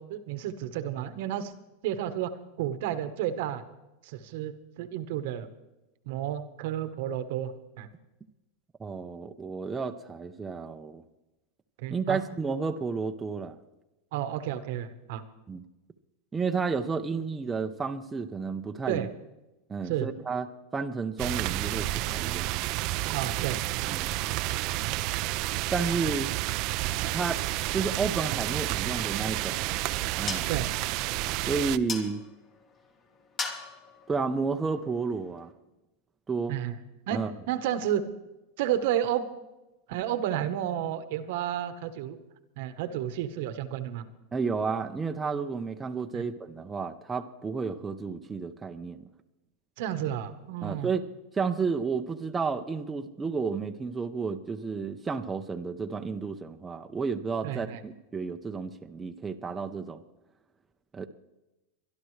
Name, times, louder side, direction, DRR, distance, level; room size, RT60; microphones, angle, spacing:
voice 1, 0.0-1.5 1.8-2.3 2.6-3.6 4.0-5.5 6.1-7.9 11.8-12.2 14.1-15.2 18.9-19.1 19.8-20.1 23.1-23.6 30.5-30.7 36.5-36.7 37.1-37.2 37.5-38.0 38.6-39.3 39.9-42.2 42.6-44.0 46.1-46.2 49.8-50.9 57.4-57.8, right 11 dB, 65° right, 11 dB, 1.1 m, -31 dB
voice 2, 8.8-11.0 11.9-13.6 15.5-15.6 16.3-19.1 19.7-22.6 23.9-24.1 25.7-26.3 27.1-27.4 27.7-29.6 30.2-30.5 31.5-32.2 34.1-35.5 36.3-36.6 37.1-37.3 44.3-49.0 50.6-51.1 51.3-60.0 60.9-61.1, right 5 dB, 15° right, 5 dB, 0.7 m, -31 dB
sound 1, 21.2-31.8, right 17 dB, 50° right, 0.5 m, -30 dB
sound 2, 29.1-35.5, left 4 dB, 30° left, 1.9 m, -41 dB
24.0 x 11.5 x 3.2 m, 1.0 s
supercardioid pair, 130°, 0 cm